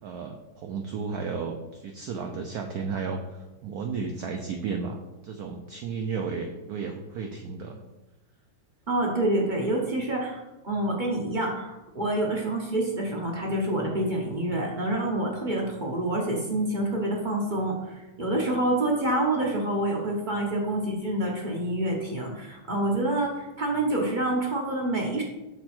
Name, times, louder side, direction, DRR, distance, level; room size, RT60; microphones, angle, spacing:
voice 1, 0.0-7.8, right 5 dB, 90° right, 4 dB, 0.8 m, -33 dB
voice 2, 8.9-25.2, right 1 dB, 45° right, -1 dB, 0.6 m, -27 dB
6.7 x 4.1 x 4.3 m, 1.0 s
omnidirectional pair, 2.2 m